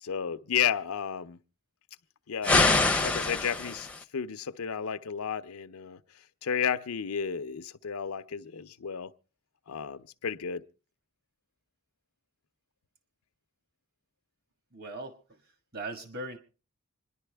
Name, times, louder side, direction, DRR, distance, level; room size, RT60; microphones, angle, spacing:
voice 1, 0.0-1.4 2.3-2.6 3.0-3.9 4.1-6.0 6.4-9.1 9.7-10.7, left 7 dB, 80° left, 0.6 m, -32 dB
sound 1, 2.4-4.0, left 3 dB, 5° left, 0.6 m, -25 dB
voice 2, 14.7-15.2 15.7-16.4, right 2 dB, 45° right, 1.6 m, -38 dB
26.5 x 11.0 x 3.4 m
head